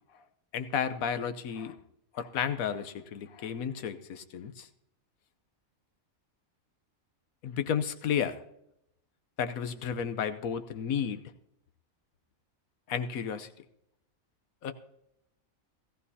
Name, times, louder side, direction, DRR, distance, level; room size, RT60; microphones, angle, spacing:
voice 1, 0.5-1.8 2.1-4.7 7.4-8.4 9.4-11.2 12.9-13.5 14.6-14.7, left 8 dB, 90° left, 11 dB, 1.3 m, -32 dB
17.5 x 14.5 x 2.8 m, 0.80 s
omnidirectional pair, 1.4 m